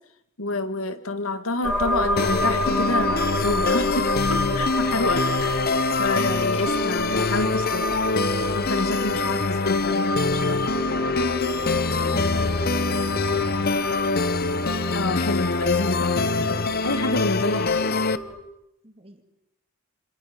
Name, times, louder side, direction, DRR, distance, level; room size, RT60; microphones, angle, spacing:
voice 1, 0.4-5.7 6.0-7.9 8.5-10.7 14.9-17.8, left 2 dB, 80° left, 9 dB, 2.0 m, -28 dB
sound 1, 1.6-18.4, equal, ahead, 4.0 m, -30 dB
sound 2, 2.2-18.2, left 3 dB, 50° left, 0.9 m, -24 dB
voice 2, 11.7-12.8 13.1-13.8 18.8-19.2, right 1 dB, 30° right, 6 dB, 2.6 m, -43 dB
28.0 x 26.5 x 5.4 m, 0.79 s
head